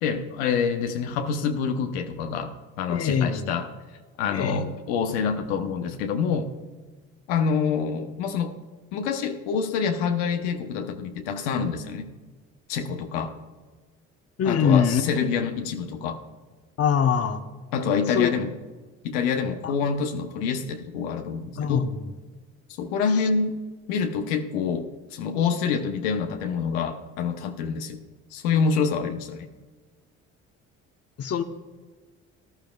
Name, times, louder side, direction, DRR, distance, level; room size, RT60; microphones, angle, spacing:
voice 1, 0.0-3.7 4.2-6.5 7.3-8.5 8.9-12.1 12.7-13.3 14.4-16.2 17.7-18.5 19.0-21.9 22.8-23.6 23.9-28.0 28.3-29.5, left 6 dB, 85° left, 5 dB, 0.9 m, -26 dB
voice 2, 2.9-3.5 4.3-4.7 14.4-15.1 16.8-17.4 18.1-18.3 19.6-19.7 21.6-22.0 31.2-31.4, left 7 dB, 45° left, 8 dB, 1.0 m, -23 dB
17.5 x 11.5 x 2.3 m, 1.4 s
hypercardioid pair, 65°, 34 cm